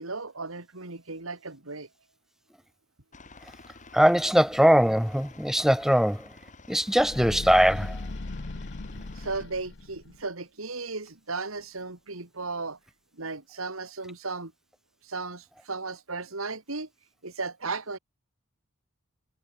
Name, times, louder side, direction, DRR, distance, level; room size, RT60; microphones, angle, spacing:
voice 1, 0.0-1.9 9.1-12.8 13.1-14.5 15.0-16.9 17.2-18.0, right 3 dB, 75° right, 2.9 m, -35 dB
Aircraft, 3.1-9.4, left 3 dB, 35° left, 6.1 m, -50 dB
voice 2, 3.9-6.3 6.7-8.0, equal, ahead, 1.2 m, -21 dB
sound 1, 6.9-10.2, left 2 dB, 60° left, 1.0 m, -38 dB
head